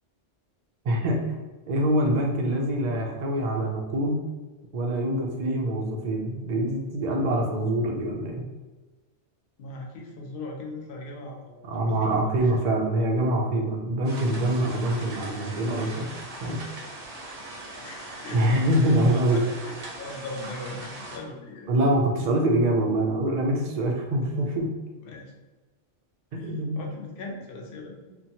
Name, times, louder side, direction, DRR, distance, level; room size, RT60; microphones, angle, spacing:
voice 1, 0.8-1.4 1.7-4.2 4.7-8.4 11.7-16.1 16.4-16.6 18.3-19.5 21.7-24.7 26.3-26.9, right 1 dB, 55° right, 1 dB, 0.5 m, -25 dB
voice 2, 9.6-12.7 17.8-18.6 19.0-21.7 25.0-25.3 26.3-27.9, left 2 dB, 60° left, 0 dB, 0.7 m, -39 dB
sound 1, 14.1-21.2, right 2 dB, 80° right, 1.0 m, -40 dB
2.9 x 2.2 x 2.7 m, 1.2 s
omnidirectional pair, 1.2 m